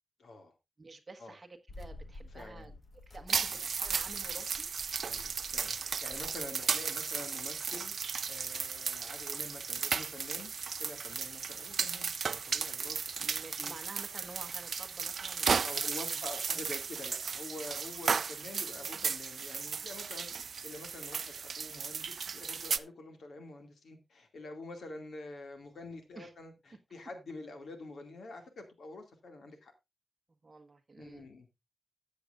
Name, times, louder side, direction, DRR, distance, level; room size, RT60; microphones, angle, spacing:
voice 1, 0.2-0.5 1.2-1.3 2.3-2.7 3.5-3.6 5.0-7.9 8.3-10.5 10.8-13.0 13.3-13.7 15.6-29.7 31.0-31.5, left 2 dB, 80° left, 2.4 m, -47 dB
voice 2, 0.8-4.7 13.2-16.6 26.1-26.3 30.4-31.3, right 3 dB, 30° right, 1.4 m, -50 dB
sound 1, 1.7-6.5, left 2 dB, 45° left, 1.4 m, -51 dB
sound 2, 3.3-22.8, right 6 dB, 60° right, 0.5 m, -35 dB
14.0 x 8.3 x 2.5 m
wide cardioid pair, 175°, 0 cm